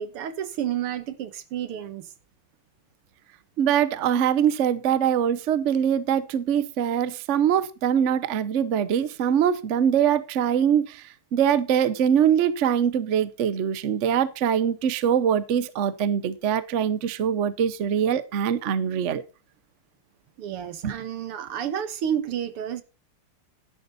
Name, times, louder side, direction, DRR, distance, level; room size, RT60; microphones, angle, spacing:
voice 1, 0.0-2.1 20.4-22.8, right 9 dB, 90° right, 2.2 m, -30 dB
voice 2, 3.6-11.0 11.3-19.2 20.8-21.0, right 8 dB, 60° right, 0.7 m, -23 dB
11.0 x 11.0 x 4.1 m
omnidirectional pair, 2.4 m